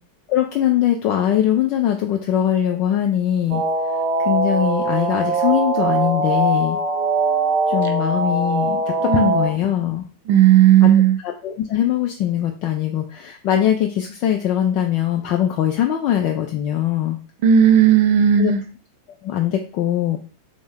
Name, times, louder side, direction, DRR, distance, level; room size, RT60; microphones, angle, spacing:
voice 1, 0.3-3.6 4.3-6.8 7.7-10.0 10.8-10.9 11.2-17.2 18.4-18.5 19.2-20.2, left 11 dB, 40° left, 3 dB, 0.3 m, -21 dB
sound 1, 3.5-9.5, right 3 dB, 30° right, 1.0 m, -21 dB
voice 2, 9.1-9.4 10.3-11.2 17.4-18.6, right 9 dB, 50° right, 6 dB, 0.5 m, -14 dB
3.4 x 2.1 x 3.4 m, 0.39 s
figure-of-eight pair, 90°, 0 cm